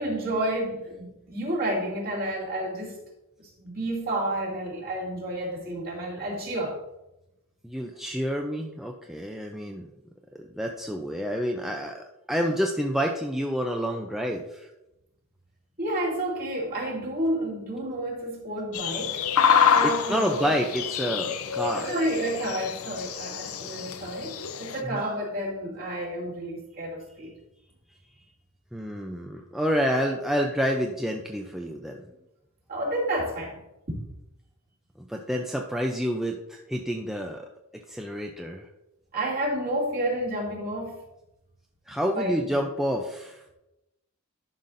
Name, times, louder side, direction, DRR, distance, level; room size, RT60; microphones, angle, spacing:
voice 1, 0.0-3.0 3.6-6.8 15.8-19.2 19.7-20.5 21.7-27.4 32.7-33.6 39.1-41.0 42.1-42.6, right 1 dB, 45° right, -4 dB, 2.5 m, -30 dB
voice 2, 7.6-9.8 10.3-14.7 20.1-21.9 24.9-25.0 28.7-32.1 35.0-37.5 37.7-38.7 41.9-43.4, equal, ahead, 1 dB, 0.4 m, -29 dB
sound 1, 18.7-24.8, left 7 dB, 65° left, 0.6 m, -26 dB
11.5 x 5.6 x 2.6 m, 0.91 s
head